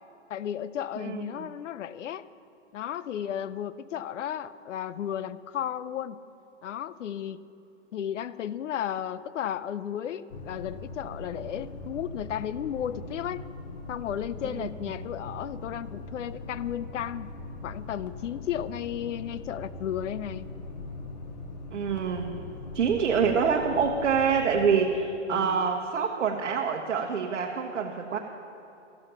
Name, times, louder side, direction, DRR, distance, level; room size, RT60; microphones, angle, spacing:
voice 1, 0.3-2.3 2.7-6.2 6.6-7.4 7.9-13.4 13.9-17.3 17.6-20.5 25.3-25.7, left 10 dB, 85° left, 16 dB, 0.6 m, -34 dB
voice 2, 1.0-1.5 14.6-14.7 21.7-22.3 22.7-28.2, right 6 dB, 85° right, 1 dB, 1.1 m, -26 dB
sound 1, 10.3-24.8, left 2 dB, 35° left, 0.6 m, -41 dB
14.0 x 7.1 x 5.6 m, 2.9 s
hypercardioid pair, 175°, 36 cm